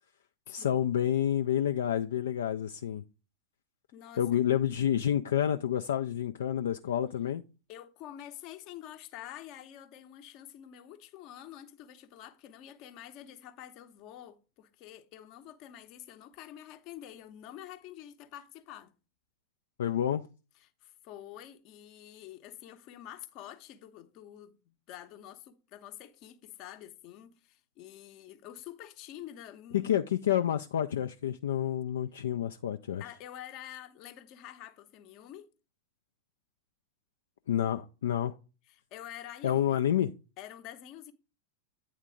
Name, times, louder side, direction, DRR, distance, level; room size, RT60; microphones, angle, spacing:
voice 1, 0.5-3.0 4.2-7.4 19.8-20.2 29.7-33.0 37.5-38.3 39.4-40.1, left 10 dB, 65° left, 0.3 m, -29 dB
voice 2, 3.9-4.3 7.7-18.9 20.6-30.0 33.0-35.5 38.7-39.8 40.4-41.1, left 11 dB, 40° left, 0.7 m, -48 dB
9.0 x 3.6 x 4.9 m
figure-of-eight pair, 90°, 0 cm